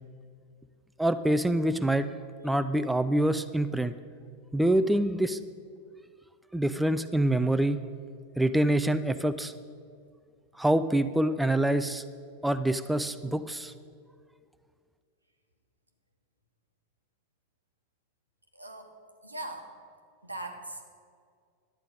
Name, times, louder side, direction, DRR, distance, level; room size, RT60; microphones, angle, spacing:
voice 1, 1.0-2.1 2.4-3.9 4.5-5.4 6.5-7.9 8.4-9.5 10.6-12.0 12.4-13.7, right 1 dB, 5° right, 10 dB, 0.4 m, -26 dB
voice 2, 18.6-18.9 19.2-19.6 20.2-20.8, right 2 dB, 85° right, 4 dB, 1.2 m, -39 dB
11.5 x 8.8 x 5.2 m, 2.2 s
figure-of-eight pair, 90°, 0 cm